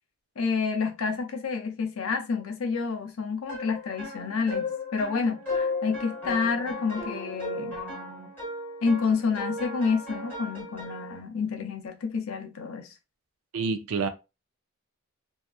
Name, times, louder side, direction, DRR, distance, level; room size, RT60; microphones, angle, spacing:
voice 1, 0.4-7.8 8.8-12.9, left 5 dB, 70° left, 0.6 m, -29 dB
sound 1, 3.5-11.2, left 3 dB, 10° left, 1.3 m, -35 dB
voice 2, 13.5-14.1, right 4 dB, 70° right, 0.4 m, -27 dB
2.7 x 2.3 x 2.4 m
head